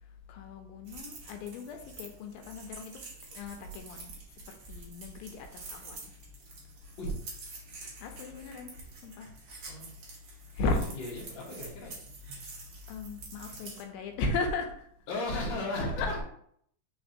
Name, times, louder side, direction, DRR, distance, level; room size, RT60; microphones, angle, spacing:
voice 1, 0.0-3.0 3.3-6.1 8.0-8.7 9.0-9.3 10.5-10.9 12.9-14.9 15.8-16.2, left 3 dB, 85° left, 4 dB, 2.4 m, -36 dB
sound 1, 0.9-13.8, right 3 dB, 85° right, 1.1 m, -48 dB
voice 2, 11.0-12.0 15.1-16.2, left 1 dB, 65° left, -4 dB, 1.1 m, -34 dB
5.0 x 3.7 x 2.7 m, 0.66 s
omnidirectional pair, 4.2 m